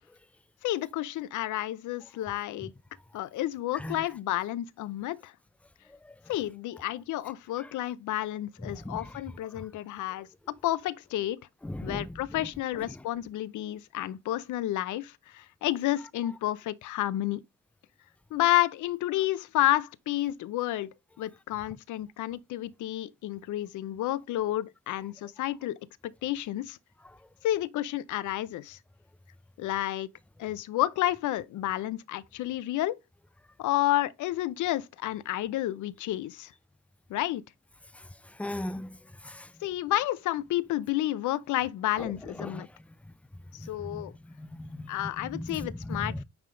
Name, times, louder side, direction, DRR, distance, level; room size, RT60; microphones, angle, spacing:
voice 1, 0.6-2.7 3.1-5.3 6.3-10.3 10.6-11.4 11.8-17.4 18.3-25.8 26.2-26.8 27.4-28.8 29.6-30.1 30.4-33.0 33.6-36.5 37.1-37.4 39.6-42.7 43.5-44.1 44.9-46.2, left 14 dB, 75° left, 0.6 m, -30 dB
voice 2, 8.7-9.1 11.6-12.2 38.4-39.0 39.2-39.5 42.0-42.1 42.4-42.7 43.6-44.0 44.4-44.9 45.2-46.2, left 1 dB, 5° left, 0.3 m, -37 dB
9.4 x 3.5 x 3.7 m
cardioid pair, 90°, 30 cm